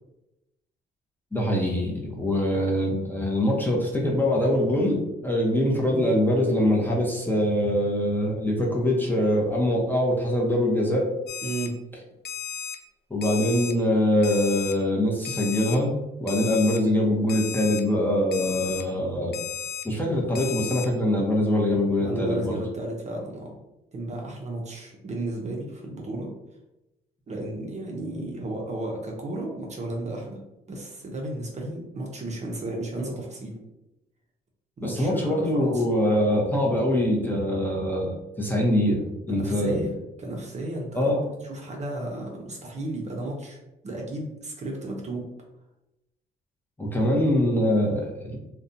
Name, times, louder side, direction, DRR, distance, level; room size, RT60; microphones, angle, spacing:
voice 1, 1.3-11.0 13.1-15.9 16.2-19.3 19.8-22.5 34.8-39.8 41.0-41.2 46.8-48.4, left 1 dB, 10° left, -3 dB, 0.6 m, -23 dB
Alarm, 11.3-11.7 12.2-12.8 13.2-13.7 14.2-14.7 15.2-15.8 16.3-16.8 17.3-17.8 18.3-18.8 19.3-19.8 20.3-20.9, left 9 dB, 55° left, 0.4 m, -34 dB
voice 2, 11.4-11.8 22.0-23.6 23.9-26.3 27.3-30.4 30.7-33.6 34.8-35.8 39.3-39.9 40.2-41.2 41.4-43.6 43.8-45.3, right 2 dB, 35° right, -1 dB, 0.6 m, -33 dB
2.5 x 2.2 x 2.6 m, 0.94 s
cardioid pair, 90°, 20 cm